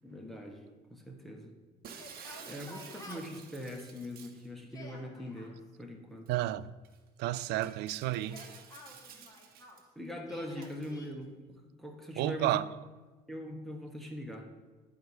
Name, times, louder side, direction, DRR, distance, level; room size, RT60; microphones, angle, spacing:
voice 1, 0.0-1.6 2.2-6.3 9.9-12.6 13.3-14.5, left 1 dB, ahead, 1.4 m, -42 dB
Shatter, 1.8-4.5 6.3-6.4 6.8-7.0 7.6-9.8 10.6-10.9, right 7 dB, 60° right, 1.2 m, -51 dB
Yell, 1.9-3.5 4.5-5.5 8.1-9.9 10.3-11.1, left 2 dB, 20° left, 2.2 m, -51 dB
voice 2, 6.3-6.7 7.2-8.4 12.2-12.7, right 15 dB, 85° right, 0.4 m, -31 dB
11.0 x 4.8 x 7.0 m
cardioid pair, 110°, 17 cm